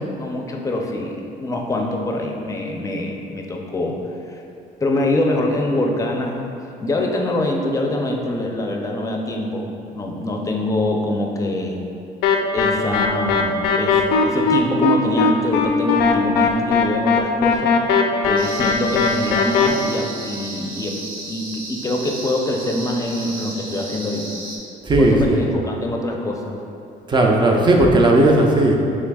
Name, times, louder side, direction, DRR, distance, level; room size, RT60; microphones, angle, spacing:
voice 1, 0.0-4.0 4.3-4.4 4.8-6.4 6.8-11.8 12.5-17.7 18.2-21.0 21.3-24.3 25.0-26.6, left 1 dB, 20° left, 1 dB, 0.5 m, -24 dB
sound 1, 12.2-19.7, left 5 dB, 75° left, 0.4 m, -18 dB
sound 2, 18.4-24.6, right 2 dB, 60° right, 0.9 m, -34 dB
voice 2, 24.8-25.4 27.1-28.8, right 1 dB, 25° right, 1 dB, 0.5 m, -15 dB
6.0 x 3.3 x 2.3 m, 2.7 s
cardioid pair, 110°, 17 cm